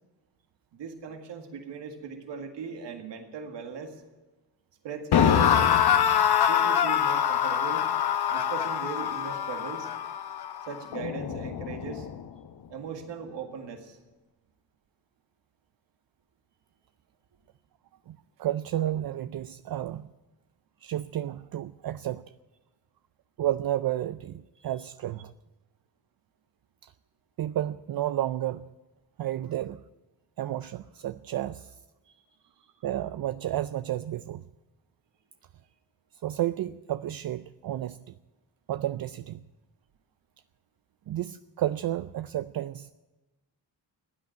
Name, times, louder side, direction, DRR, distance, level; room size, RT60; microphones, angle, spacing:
voice 1, 0.7-4.0 4.8-5.9 6.5-7.8 8.3-9.9 10.6-12.1 12.7-14.0 24.6-24.7 32.1-32.2, right 6 dB, 85° right, 4 dB, 2.0 m, -39 dB
sound 1, 5.1-12.2, left 9 dB, 65° left, 1.0 m, -25 dB
voice 2, 18.1-20.1 20.8-22.2 23.4-25.3 26.8-26.9 27.4-28.6 29.2-29.8 30.4-31.8 32.8-34.4 36.2-38.1 38.7-39.4 41.1-42.9, right 12 dB, 55° right, 12 dB, 0.5 m, -31 dB
16.0 x 9.3 x 9.4 m, 1.1 s
cardioid pair, 75°, 42 cm